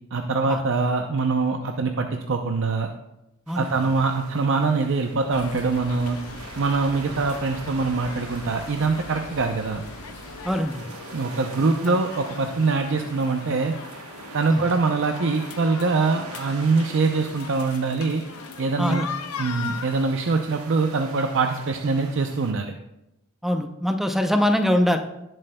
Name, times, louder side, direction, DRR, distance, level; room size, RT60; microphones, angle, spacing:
voice 1, 0.1-2.9 3.5-6.2 6.5-9.8 11.1-13.7 14.3-18.2 18.6-19.1 19.4-22.7, right 4 dB, 60° right, 4 dB, 0.6 m, -23 dB
voice 2, 3.5-3.9 7.0-7.1 10.4-10.9 11.6-12.0 14.5-14.6 18.8-19.1 23.4-25.0, equal, ahead, 5 dB, 0.6 m, -23 dB
sound 1, 3.5-22.5, right 3 dB, 85° right, 1.3 m, -44 dB
sound 2, 5.3-20.0, left 5 dB, 90° left, 0.7 m, -40 dB
sound 3, 5.3-10.6, equal, 70° left, 3.7 m, -44 dB
18.0 x 7.7 x 2.3 m, 0.90 s
head